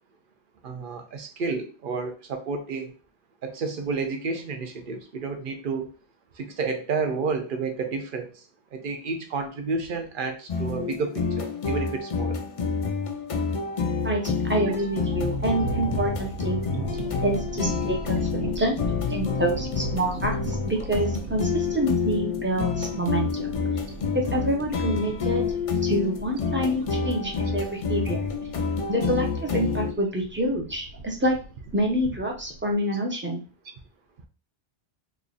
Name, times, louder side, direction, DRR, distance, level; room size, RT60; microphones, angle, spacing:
voice 1, 0.6-2.9 3.4-5.9 6.4-8.4 8.7-12.4 14.6-14.8 15.5-15.7 23.8-24.0, right 4 dB, 60° right, 6 dB, 0.8 m, -31 dB
sound 1, 10.5-29.9, left 5 dB, 50° left, 0.4 m, -28 dB
voice 2, 14.0-16.6 17.2-23.5 24.1-25.5 25.8-28.3 28.9-31.4 31.7-33.4, right 1 dB, 15° right, 0 dB, 0.6 m, -27 dB
sound 2, 14.7-32.7, right 2 dB, 85° right, 1.0 m, -38 dB
3.2 x 2.4 x 3.8 m, 0.35 s
omnidirectional pair, 1.1 m